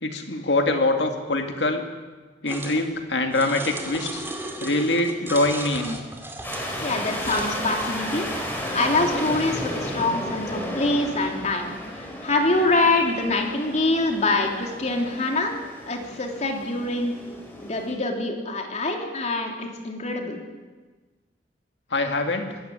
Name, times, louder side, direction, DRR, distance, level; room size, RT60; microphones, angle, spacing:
voice 1, 0.0-1.8 2.4-4.2 4.6-6.0 21.9-22.6, left 2 dB, 70° left, 4 dB, 2.4 m, -24 dB
sound 1, 2.5-2.8 3.3-7.6, right 1 dB, 15° right, 2.4 m, -35 dB
sound 2, 6.4-17.9, equal, 10° left, 4.7 m, -33 dB
voice 2, 6.8-8.3 8.7-15.6 15.9-17.1 17.6-20.4, left 2 dB, 40° left, 2 dB, 3.1 m, -25 dB
23.5 x 13.5 x 8.6 m, 1.3 s
head